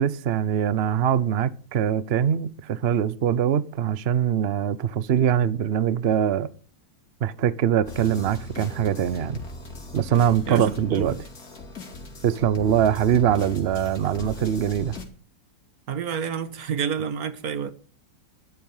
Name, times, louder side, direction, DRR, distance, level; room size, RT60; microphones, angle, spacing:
voice 1, 0.0-6.5 7.2-9.4 9.9-11.2 12.2-15.0, right 9 dB, 85° right, 0.5 m, -23 dB
sound 1, 7.8-15.0, left 2 dB, 50° left, 3.2 m, -38 dB
voice 2, 10.5-11.2 15.9-17.7, right 7 dB, 55° right, 1.5 m, -29 dB
12.0 x 12.0 x 5.5 m
omnidirectional pair, 2.0 m